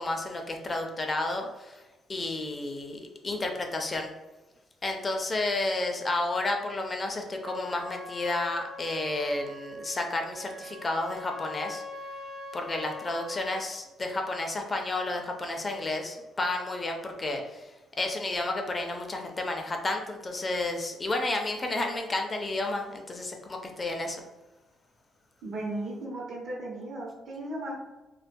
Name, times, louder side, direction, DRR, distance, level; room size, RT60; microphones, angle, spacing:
voice 1, 0.0-1.8 2.1-4.1 4.8-11.8 12.5-17.7 18.0-24.2, left 2 dB, 30° left, 3 dB, 0.4 m, -31 dB
Trumpet, 7.4-13.6, left 2 dB, 40° right, 0.5 m, -42 dB
voice 2, 25.4-27.8, right 1 dB, 70° right, -3 dB, 0.8 m, -36 dB
2.2 x 2.2 x 2.5 m, 1.1 s
cardioid pair, 90°, 0 cm